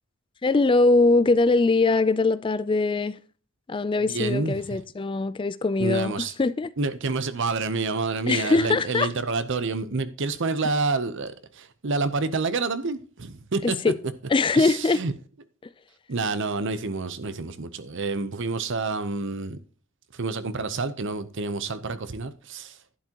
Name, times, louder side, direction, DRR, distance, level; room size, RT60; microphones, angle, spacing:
voice 1, 0.4-3.2 3.7-6.7 8.3-9.1 13.6-14.0 14.3-15.0, left 3 dB, 25° left, 0.4 m, -22 dB
voice 2, 4.1-4.6 5.8-6.3 6.8-13.9 14.5-15.1 16.1-19.6 20.1-22.8, right 3 dB, 60° right, 0.8 m, -28 dB
11.0 x 9.9 x 2.9 m
head